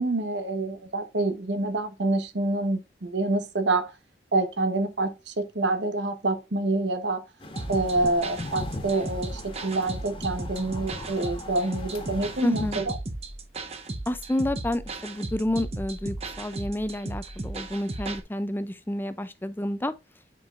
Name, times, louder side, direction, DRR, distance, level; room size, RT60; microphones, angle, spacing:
voice 1, 0.0-3.9 4.3-7.2 7.7-13.0, right 2 dB, 90° right, 1.0 m, -27 dB
sound 1, 7.4-12.8, left 1 dB, 30° left, 1.5 m, -39 dB
sound 2, 7.6-18.2, right 2 dB, 35° right, 0.8 m, -36 dB
voice 2, 12.4-12.8 14.1-19.9, left 1 dB, 10° left, 0.4 m, -29 dB
9.4 x 4.6 x 2.4 m
head